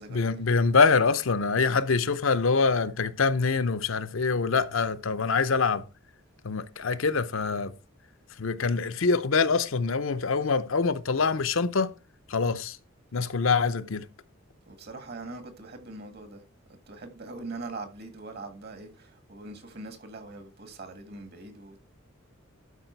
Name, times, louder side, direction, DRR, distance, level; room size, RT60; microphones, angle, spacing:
voice 1, 0.1-5.9 6.4-7.7 8.4-11.9 12.3-12.8 13.1-14.0, left 4 dB, 70° left, 0.7 m, -25 dB
voice 2, 14.7-16.4 16.9-21.8, right 3 dB, 50° right, 1.9 m, -42 dB
12.0 x 4.9 x 4.5 m
head